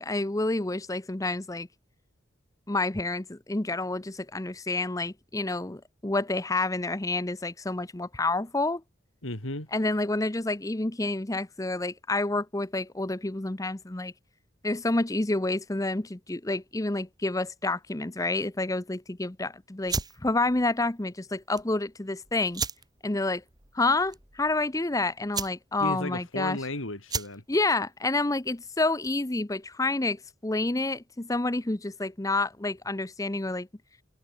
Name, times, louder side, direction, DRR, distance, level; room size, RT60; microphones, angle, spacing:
voice 1, 0.0-1.7 2.7-8.8 9.7-14.1 14.6-19.9 20.2-22.6 23.0-23.4 23.7-26.6 27.5-33.7, left 2 dB, 15° left, 0.7 m, -29 dB
voice 2, 9.2-9.7 25.8-27.4, left 1 dB, 85° left, 4.8 m, -34 dB
sound 1, 19.8-29.3, right 5 dB, 20° right, 2.4 m, -38 dB
head